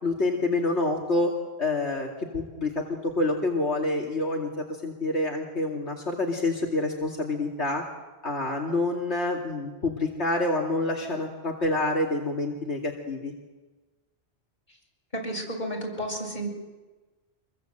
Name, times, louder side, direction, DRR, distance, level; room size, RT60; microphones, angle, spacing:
voice 1, 0.0-1.3 1.6-2.1 2.3-7.8 8.2-13.3, left 2 dB, 80° left, -1 dB, 2.8 m, -27 dB
voice 2, 15.1-16.6, right 1 dB, 45° left, 0 dB, 7.0 m, -32 dB
26.0 x 23.0 x 7.9 m, 1.2 s
omnidirectional pair, 1.1 m